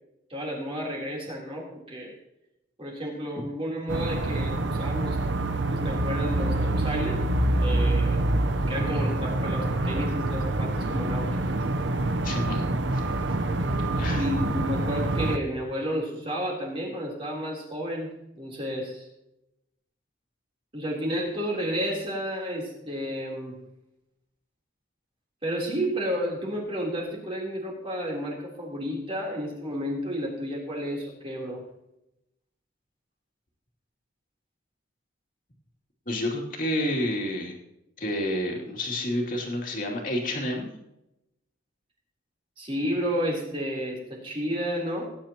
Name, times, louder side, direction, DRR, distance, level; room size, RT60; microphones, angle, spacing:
voice 1, 0.3-2.1 2.8-5.2 5.7-7.3 7.5-8.2 8.7-11.6 14.2-19.1 20.7-23.6 25.4-31.6 42.6-45.0, equal, 25° right, -2 dB, 3.6 m, -31 dB
sound 1, 3.9-15.4, right 2 dB, 60° right, 0.8 m, -26 dB
voice 2, 8.6-8.9 12.2-12.7 12.9-13.0 13.9-14.3 36.1-37.6 38.0-40.7, left 1 dB, 40° left, 0 dB, 2.8 m, -29 dB
19.0 x 10.5 x 3.0 m, 0.88 s
head